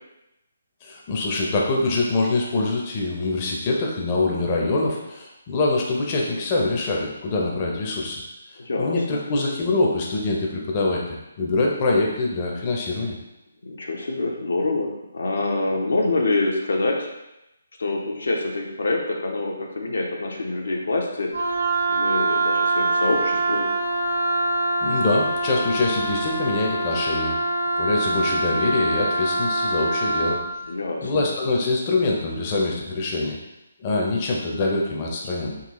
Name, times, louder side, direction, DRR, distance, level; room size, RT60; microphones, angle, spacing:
voice 1, 0.8-8.2 8.8-13.2 24.8-27.4 27.8-30.4 31.0-33.4 33.8-35.6, left 2 dB, 25° left, -2 dB, 0.5 m, -24 dB
voice 2, 8.6-9.2 13.6-17.1 17.8-21.3 21.9-23.7 30.7-31.2, left 2 dB, 85° left, 1 dB, 0.7 m, -26 dB
Wind instrument woodwind instrument, 21.3-30.4, right 2 dB, 85° right, 0.7 m, -24 dB
3.7 x 2.3 x 2.9 m, 0.92 s
hypercardioid pair, 165°, 0 cm